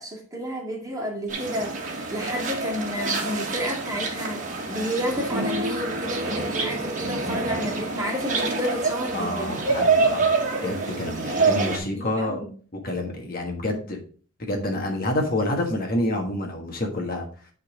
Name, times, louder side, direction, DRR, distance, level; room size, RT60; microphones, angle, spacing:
voice 1, 0.0-9.5 11.6-12.5, equal, 15° right, -2 dB, 2.3 m, -31 dB
sound 1, 1.3-11.8, right 3 dB, 35° right, 1.6 m, -26 dB
voice 2, 9.1-12.4 12.8-14.0 14.4-17.3, left 1 dB, 40° left, 2 dB, 1.5 m, -28 dB
9.9 x 3.9 x 5.0 m, 0.42 s
head